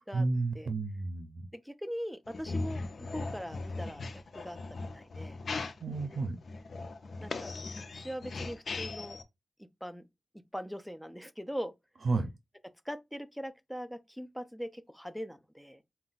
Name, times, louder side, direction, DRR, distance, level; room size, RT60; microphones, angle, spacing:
voice 1, 0.1-1.5 5.8-6.4 12.0-12.3, right 3 dB, 80° right, 0.5 m, -31 dB
voice 2, 1.5-4.6 4.9-5.4 7.2-7.6 7.9-9.2 9.8-10.0 10.5-11.7 12.9-15.8, equal, 5° left, 0.4 m, -41 dB
sound 1, 2.3-9.2, left 3 dB, 75° left, 0.5 m, -39 dB
4.2 x 2.3 x 3.9 m
wide cardioid pair, 100°, 0 cm